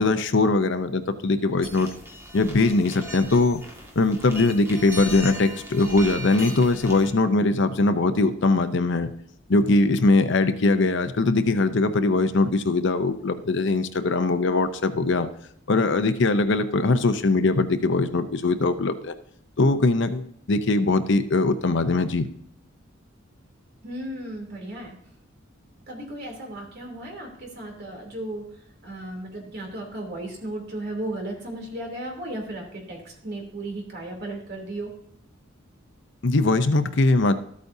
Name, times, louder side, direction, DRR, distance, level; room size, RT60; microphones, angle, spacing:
voice 1, 0.0-1.9 2.3-3.6 4.0-9.1 9.5-15.3 15.7-19.1 19.6-22.3 36.2-37.3, left 2 dB, 60° left, 10 dB, 0.7 m, -21 dB
sound 1, 1.6-7.1, equal, 15° right, 1.9 m, -38 dB
voice 2, 23.8-24.9 25.9-28.4 28.8-34.9, right 1 dB, 50° right, 0 dB, 3.0 m, -35 dB
13.0 x 8.4 x 2.7 m, 0.69 s
head